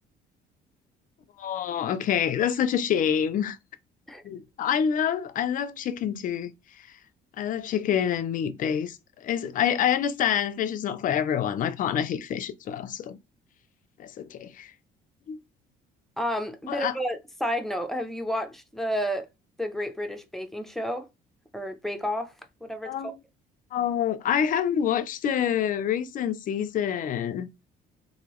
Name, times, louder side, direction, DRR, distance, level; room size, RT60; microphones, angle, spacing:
voice 1, 1.4-3.6 4.2-6.5 7.4-13.2 14.0-14.7 15.3-15.4 16.7-16.9 22.9-23.1 23.7-27.5, left 9 dB, 50° left, 0.5 m, -27 dB
voice 2, 16.2-19.3 19.6-21.1 21.5-22.3 22.6-23.1, equal, ahead, 0.5 m, -31 dB
2.9 x 2.7 x 3.0 m
cardioid pair, 110°, 17 cm